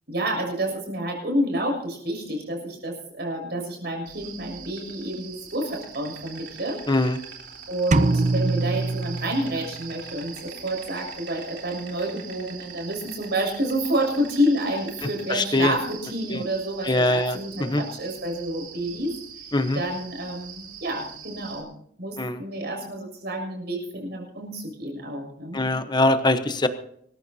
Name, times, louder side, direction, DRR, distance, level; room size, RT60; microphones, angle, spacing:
voice 1, 0.1-6.8 7.7-19.1 19.7-21.7 22.0-25.7, right 1 dB, 65° right, 1 dB, 6.6 m, -29 dB
Insect, 4.1-21.6, right 7 dB, 85° right, 3.6 m, -42 dB
voice 2, 6.9-7.2 15.3-15.7 16.3-16.4 16.8-17.8 19.5-19.8 22.2-22.4 25.5-26.7, left 2 dB, 25° left, 9 dB, 1.0 m, -22 dB
sound 1, 7.9-9.9, right 2 dB, 40° right, 0.6 m, -23 dB
25.0 x 14.5 x 2.8 m, 0.68 s
head